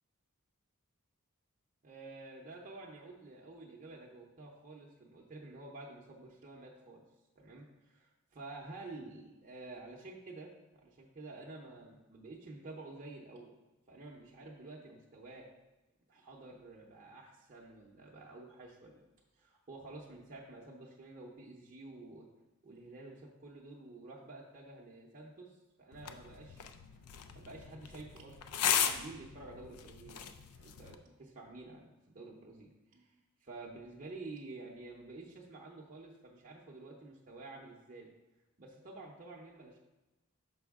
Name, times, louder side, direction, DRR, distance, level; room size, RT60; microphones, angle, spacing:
voice 1, 1.8-7.0 7.4-13.5 13.9-15.5 16.1-19.0 19.3-22.3 22.6-26.6 27.3-30.3 30.5-38.1 38.6-39.8, right 2 dB, 40° right, -3 dB, 0.7 m, -50 dB
sound 1, 25.9-30.9, left 8 dB, 85° left, 0.4 m, -37 dB
6.1 x 5.3 x 3.5 m, 1.0 s
head